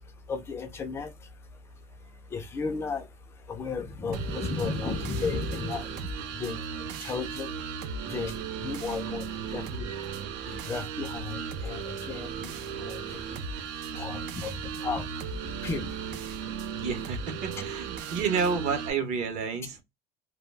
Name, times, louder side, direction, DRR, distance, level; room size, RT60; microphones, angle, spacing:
voice 1, 0.3-1.1 2.3-3.0 3.5-5.9 6.4-6.6 7.0-7.5 8.1-8.3 8.6-9.2 9.5-9.9 10.5-12.5 12.8-13.2 14.0-14.5 14.8-15.1 15.6-15.9, left 4 dB, 15° left, 0.3 m, -33 dB
sound 1, 4.1-18.9, right 7 dB, 70° right, 0.5 m, -36 dB
voice 2, 9.9-10.7 16.8-19.8, right 5 dB, 40° right, 0.7 m, -31 dB
2.2 x 2.1 x 3.2 m
cardioid pair, 175°, 18 cm